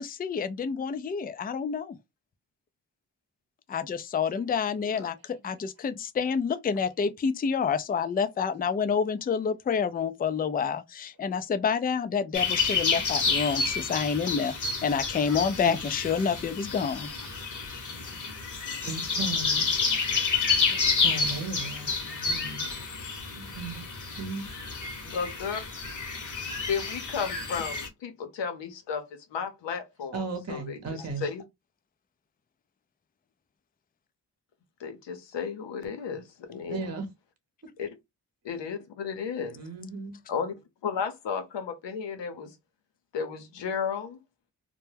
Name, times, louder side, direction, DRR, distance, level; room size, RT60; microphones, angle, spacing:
voice 1, 0.0-1.9 3.7-17.1 20.6-20.8, left 6 dB, 25° left, 0.3 m, -28 dB
sound 1, 12.3-27.9, left 4 dB, 45° left, 0.9 m, -29 dB
voice 2, 18.8-19.8 21.0-22.6 23.3-23.8 24.2-24.5 30.1-31.3 36.7-37.1 39.6-40.2, right 4 dB, 35° right, 0.8 m, -36 dB
voice 3, 25.0-25.6 26.7-29.1 29.3-30.2 30.5-30.8 31.2-31.4 34.8-36.9 37.8-37.9 38.4-39.6 40.3-40.5 40.8-42.5 43.1-44.2, left 6 dB, 85° left, 0.7 m, -33 dB
2.2 x 2.1 x 3.2 m
cardioid pair, 45°, 42 cm